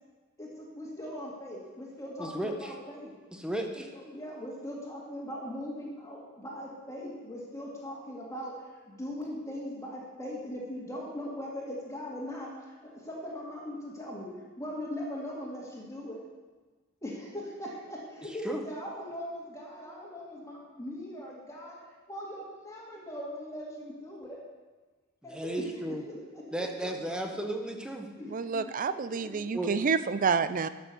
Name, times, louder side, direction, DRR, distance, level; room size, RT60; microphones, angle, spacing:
voice 1, 0.4-3.1 3.7-8.5 8.9-14.3 14.6-16.2 17.0-21.8 22.1-24.4 25.2-25.7 26.1-26.4 26.8-27.3 28.2-29.5, equal, 15° left, -4 dB, 2.1 m, -40 dB
voice 2, 2.2-2.7 3.3-3.9 18.4-18.6 25.2-26.0 26.5-28.1 29.5-29.7, right 1 dB, 5° right, 3 dB, 1.1 m, -34 dB
voice 3, 28.3-30.7, right 5 dB, 40° right, 14 dB, 0.4 m, -28 dB
12.5 x 6.2 x 6.8 m, 1.3 s
head